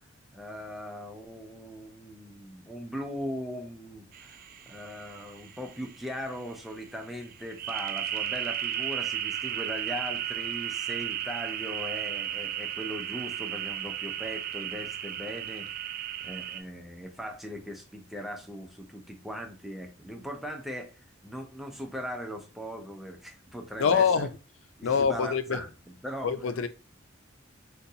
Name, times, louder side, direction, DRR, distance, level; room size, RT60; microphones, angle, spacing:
voice 1, 0.3-20.9 21.2-24.3 24.8-26.3, equal, ahead, 0.6 m, -39 dB
sound 1, 4.1-16.6, right 10 dB, 45° right, 0.3 m, -35 dB
voice 2, 23.8-24.4 24.8-25.6 26.2-26.7, left 6 dB, 85° left, 0.4 m, -25 dB
3.9 x 2.2 x 2.7 m
head